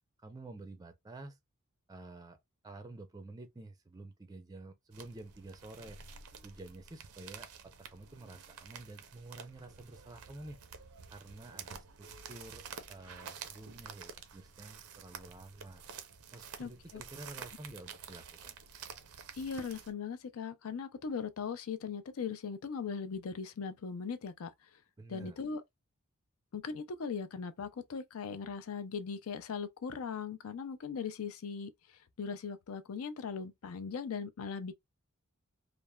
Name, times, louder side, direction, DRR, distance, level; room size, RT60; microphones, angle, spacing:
voice 1, 0.2-1.4 1.9-2.4 2.6-6.0 6.4-10.6 11.1-15.8 16.3-18.6 25.0-25.4, right 2 dB, 15° right, 0.4 m, -50 dB
sound 1, 4.9-19.9, right 6 dB, 80° right, 0.6 m, -50 dB
voice 2, 16.6-17.0 19.3-24.5 25.1-25.6 26.5-34.7, left 5 dB, 65° left, 0.5 m, -39 dB
3.2 x 2.0 x 2.2 m
head